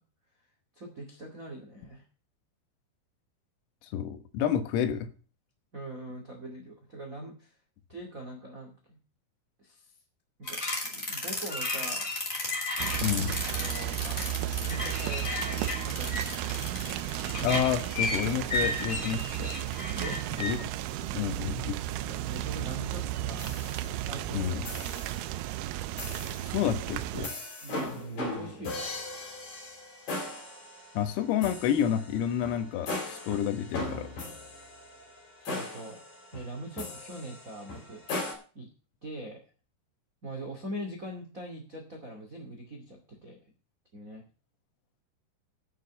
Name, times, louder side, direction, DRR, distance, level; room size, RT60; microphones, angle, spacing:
voice 1, 0.7-2.0 5.7-7.5 7.9-9.0 9.6-9.9 10.4-12.1 13.4-14.2 14.6-16.3 19.9-20.2 21.8-23.5 24.0-24.9 27.6-28.8 35.4-36.0 36.3-38.0 38.5-38.7 39.0-39.4 40.2-43.4 43.9-44.2, right 1 dB, 45° right, 2 dB, 1.0 m, -42 dB
voice 2, 3.8-5.1 13.0-13.4 17.4-19.5 20.4-20.7 21.1-21.8 24.3-24.7 26.4-27.3 31.0-34.1, left 9 dB, 85° left, 8 dB, 4.1 m, -29 dB
sound 1, 10.5-20.5, left 2 dB, 20° left, 2.6 m, -33 dB
sound 2, 12.8-27.3, right 14 dB, 90° right, 3.5 m, -34 dB
sound 3, 23.4-24.2 24.7-25.3 26.0-26.6 27.2-38.3, left 2 dB, 40° left, 4.9 m, -39 dB
9.1 x 7.6 x 8.1 m, 0.37 s
omnidirectional pair, 5.9 m